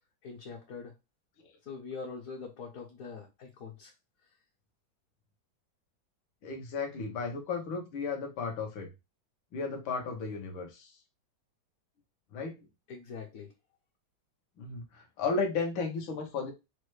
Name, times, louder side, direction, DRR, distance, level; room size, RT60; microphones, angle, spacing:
voice 1, 0.2-0.9 1.6-3.9 4.2-4.3 12.9-13.5, left 5 dB, 55° left, 1.0 m, -43 dB
voice 2, 6.4-8.9 9.5-11.0 12.3-12.6 14.6-16.5, left 4 dB, 75° left, 1.8 m, -34 dB
6.4 x 2.2 x 3.1 m
omnidirectional pair, 2.1 m